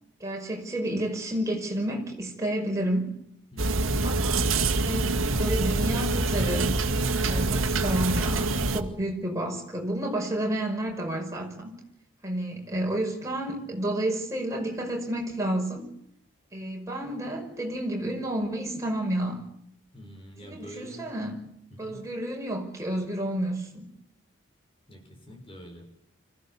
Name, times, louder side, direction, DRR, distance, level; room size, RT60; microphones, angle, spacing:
voice 1, 0.2-3.1 4.0-4.5 4.8-5.1 5.4-6.8 7.3-11.8 12.2-15.9 16.5-19.5 20.4-21.5 21.8-23.9, right 1 dB, 15° right, 5.7 m, -30 dB
voice 2, 3.5-3.8 19.9-21.1 21.7-22.0 24.9-25.9, equal, 25° left, 6.0 m, -45 dB
sound 1, 3.6-8.8, right 3 dB, 85° right, 2.1 m, -25 dB
25.5 x 16.0 x 8.6 m
head